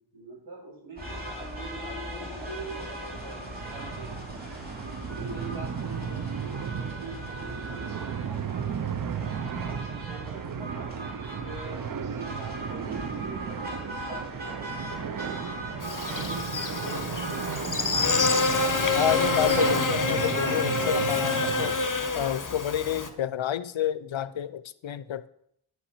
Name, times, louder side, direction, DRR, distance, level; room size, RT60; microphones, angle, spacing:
voice 1, 0.0-4.7 5.0-9.4 9.7-10.9 11.3-17.2, right 3 dB, 75° right, -3 dB, 4.4 m, -45 dB
sound 1, 1.0-19.8, equal, 20° right, 2.8 m, -38 dB
sound 2, 3.1-21.8, right 7 dB, 45° right, 0.5 m, -34 dB
Buzz, 15.8-23.1, left 4 dB, 40° left, 0.9 m, -27 dB
voice 2, 18.9-21.7 22.1-25.3, left 11 dB, 75° left, 15 dB, 0.5 m, -29 dB
9.3 x 5.7 x 5.6 m, 0.72 s
wide cardioid pair, 90°, 47 cm